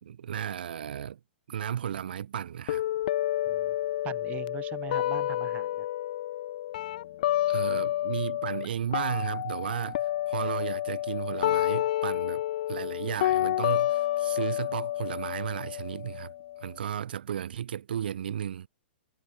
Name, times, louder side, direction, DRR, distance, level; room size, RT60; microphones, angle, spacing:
voice 1, 0.0-1.2 1.5-2.8 7.5-12.4 12.7-16.3 16.6-18.7, right 9 dB, 65° right, 0.6 m, -34 dB
sound 1, 2.7-8.7 8.9-16.7, left 13 dB, 55° left, 0.4 m, -29 dB
voice 2, 4.0-5.9, right 13 dB, 25° right, 0.7 m, -41 dB
figure-of-eight pair, 110°, 6 cm